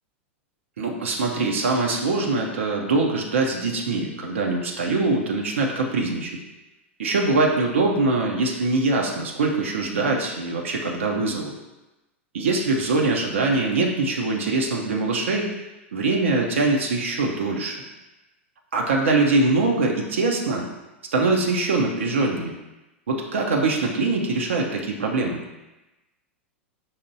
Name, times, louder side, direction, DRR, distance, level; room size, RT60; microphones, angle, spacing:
voice 1, 0.8-6.4 7.0-11.5 12.3-15.6 15.9-17.8 18.7-20.7 21.1-22.5 23.1-25.4, right 3 dB, 75° right, 0 dB, 0.5 m, -23 dB
5.5 x 2.9 x 2.6 m, 1.0 s
figure-of-eight pair, 95°, 7 cm